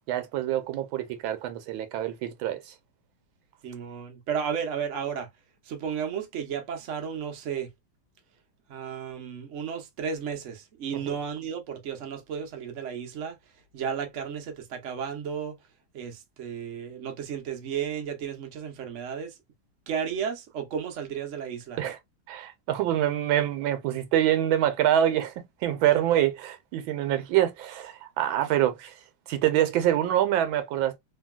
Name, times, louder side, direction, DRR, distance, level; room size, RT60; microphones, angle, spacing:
voice 1, 0.0-2.6 11.1-11.2 21.8-22.0 22.3-28.9 29.3-31.0, right 11 dB, 85° right, 1.4 m, -25 dB
voice 2, 3.6-5.3 5.6-7.7 8.7-13.4 13.7-15.6 15.9-19.4 19.9-21.8, right 7 dB, 60° right, 0.8 m, -33 dB
2.9 x 2.7 x 2.2 m
omnidirectional pair, 2.2 m